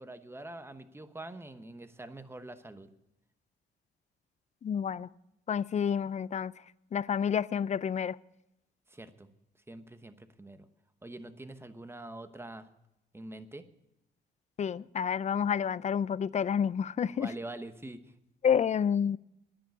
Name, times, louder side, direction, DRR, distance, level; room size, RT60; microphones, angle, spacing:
voice 1, 0.0-2.9 8.9-9.3 9.7-10.7 11.0-12.7 13.1-13.6 17.1-18.1, right 2 dB, 10° right, 1.0 m, -45 dB
voice 2, 4.6-5.1 5.5-6.5 6.9-8.2 14.6-17.3 18.4-19.2, left 7 dB, 35° left, 0.4 m, -29 dB
10.0 x 9.4 x 9.6 m
cardioid pair, 90°, 20 cm